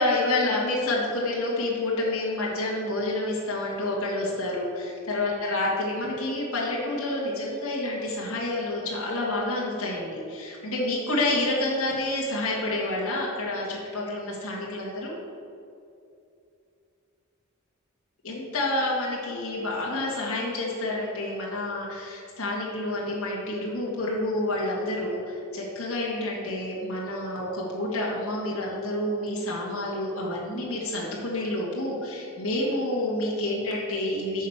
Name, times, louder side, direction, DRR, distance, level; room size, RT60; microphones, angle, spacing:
voice 1, 0.0-15.2 18.2-34.5, left 2 dB, 75° left, -5 dB, 2.0 m, -28 dB
9.3 x 5.1 x 7.3 m, 2.6 s
head